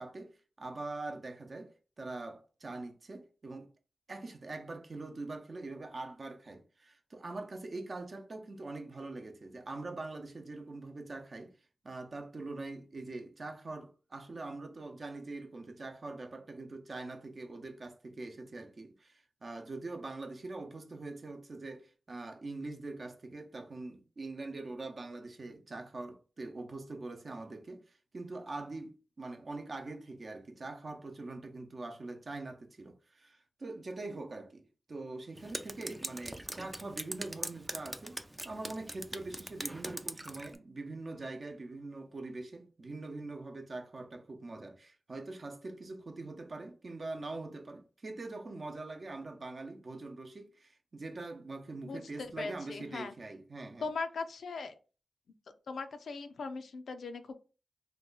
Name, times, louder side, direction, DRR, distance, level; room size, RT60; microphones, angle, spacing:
voice 1, 0.0-3.7 4.1-11.5 11.8-53.9, right 2 dB, 50° right, 0.7 m, -43 dB
Drip, 35.4-40.6, right 1 dB, 15° right, 0.4 m, -42 dB
voice 2, 51.8-53.1 53.8-54.7 55.7-57.3, left 4 dB, 85° left, 0.4 m, -39 dB
2.9 x 2.2 x 3.8 m
cardioid pair, 60°, 0 cm